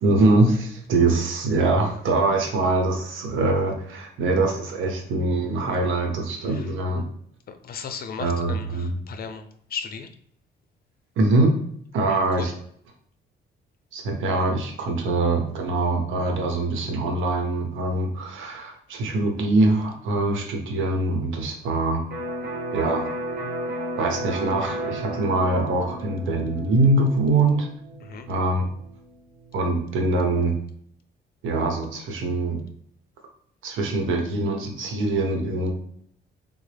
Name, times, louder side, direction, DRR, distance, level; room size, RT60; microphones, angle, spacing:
voice 1, 0.0-7.0 8.2-8.9 11.2-11.5 11.9-12.5 13.9-22.0 22.7-23.1 24.0-27.7 28.3-28.6 29.5-30.5 31.4-32.6 33.6-35.7, right 2 dB, 80° right, 2 dB, 0.8 m, -23 dB
voice 2, 7.5-10.1 12.1-12.5 28.0-28.3, left 6 dB, 50° left, 8 dB, 0.5 m, -36 dB
Electric guitar, 22.1-29.8, right 1 dB, 50° right, 1.1 m, -33 dB
3.6 x 2.0 x 3.3 m, 0.65 s
cardioid pair, 90°, 20 cm